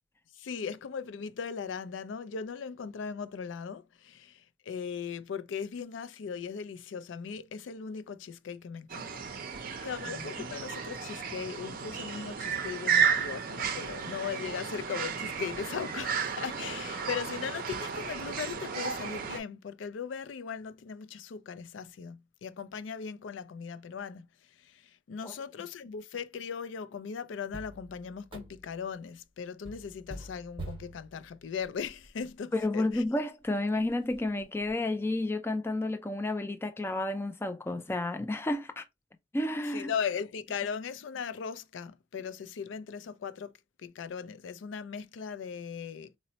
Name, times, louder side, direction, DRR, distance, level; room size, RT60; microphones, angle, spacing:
voice 1, 0.3-9.1 9.5-33.0 39.7-43.5 43.8-46.1, left 6 dB, 85° left, 0.4 m, -38 dB
sound 1, 8.9-19.4, right 6 dB, 50° right, 0.5 m, -33 dB
sound 2, 27.5-28.9 29.6-32.3 32.9-33.0 33.4-33.5 33.9-34.7, right 1 dB, 30° right, 0.8 m, -46 dB
voice 2, 32.5-38.8 39.3-39.9, left 2 dB, 15° left, 0.4 m, -31 dB
4.0 x 2.1 x 2.7 m
head